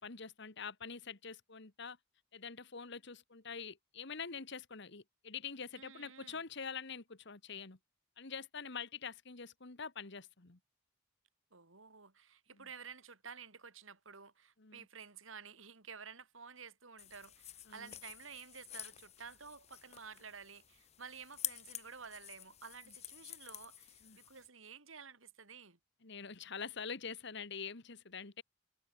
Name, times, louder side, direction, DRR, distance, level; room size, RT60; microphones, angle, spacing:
voice 1, 0.0-2.0 2.3-7.8 8.2-10.6 12.6-12.7 14.6-14.9 17.7-17.9 24.0-24.2 26.0-28.4, left 6 dB, 60° left, 1.7 m, -45 dB
voice 2, 5.8-6.4 11.5-25.8, right 6 dB, 80° right, 3.4 m, -52 dB
sound 1, 17.0-24.5, left 12 dB, 35° left, 0.7 m, -48 dB
head